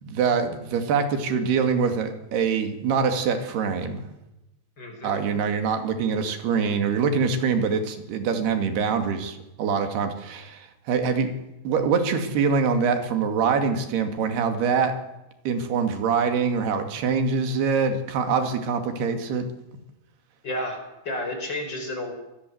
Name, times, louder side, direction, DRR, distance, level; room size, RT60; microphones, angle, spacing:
voice 1, 0.0-4.1 5.0-11.3 11.6-15.0 15.5-19.5, right 5 dB, 65° right, 7 dB, 4.3 m, -24 dB
voice 2, 4.8-5.2 20.4-20.8 21.0-22.1, left 1 dB, 25° left, 4 dB, 5.5 m, -31 dB
26.0 x 21.0 x 7.9 m, 0.97 s
omnidirectional pair, 5.2 m